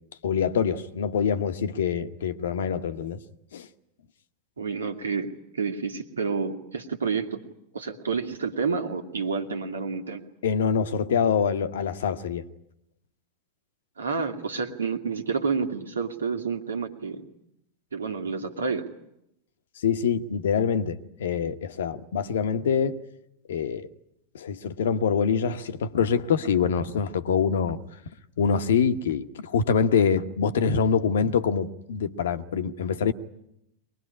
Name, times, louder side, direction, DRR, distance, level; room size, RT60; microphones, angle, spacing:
voice 1, 0.2-3.2 3.5-3.7 10.4-12.4 19.8-23.0 23.5-23.9 24.3-27.8 28.4-33.1, left 6 dB, 60° left, 11 dB, 1.1 m, -25 dB
voice 2, 4.6-7.4 7.7-10.2 14.0-17.3 17.9-18.8, right 5 dB, 70° right, 5 dB, 2.0 m, -29 dB
23.5 x 20.0 x 9.8 m, 0.81 s
figure-of-eight pair, 90°, 0 cm